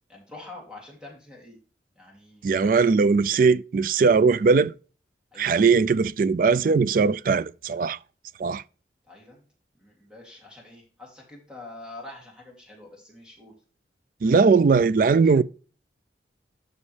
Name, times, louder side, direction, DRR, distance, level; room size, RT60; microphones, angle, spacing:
voice 1, 0.1-1.6 1.9-3.0 5.3-5.6 9.1-9.4 9.7-13.5 15.2-15.3, left 2 dB, 5° right, 2.8 m, -45 dB
voice 2, 2.4-4.7 5.4-8.0 8.4-8.6 14.2-15.4, right 4 dB, 45° right, 0.3 m, -20 dB
12.5 x 5.3 x 3.3 m
head